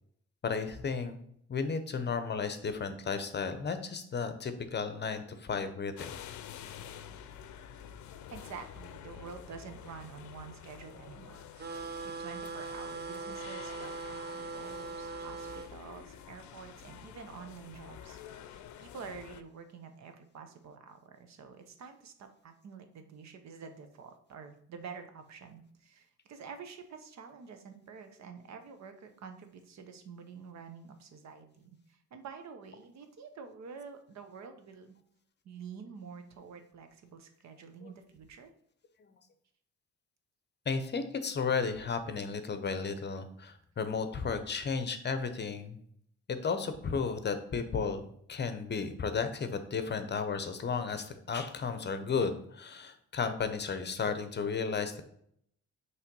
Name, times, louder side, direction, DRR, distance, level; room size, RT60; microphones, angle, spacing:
voice 1, 0.4-1.2 1.5-6.2 37.8-37.9 40.7-45.8 46.3-48.0 48.3-55.0, left 5 dB, 35° left, 9 dB, 0.7 m, -33 dB
sound 1, 6.0-19.4, left 9 dB, 70° left, 0.5 m, -49 dB
voice 2, 8.3-35.0 35.4-38.5, right 5 dB, 65° right, 7 dB, 0.9 m, -48 dB
sound 2, 11.6-15.7, right 4 dB, 35° right, 0.5 m, -40 dB
5.6 x 3.2 x 5.3 m, 0.68 s
cardioid pair, 90°, 30 cm